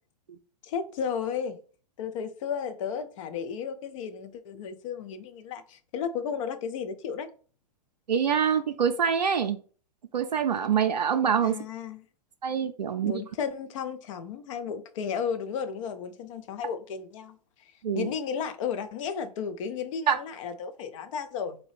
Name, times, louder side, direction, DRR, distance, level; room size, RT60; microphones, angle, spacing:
voice 1, 0.6-1.6 2.0-7.3 11.4-12.1 13.0-21.6, left 7 dB, 50° left, 0.6 m, -34 dB
voice 2, 8.1-9.6 10.1-11.6 12.4-13.2 17.8-18.1 20.1-20.2, right 7 dB, 85° right, 0.4 m, -25 dB
3.9 x 2.9 x 3.2 m
figure-of-eight pair, 110°, 21 cm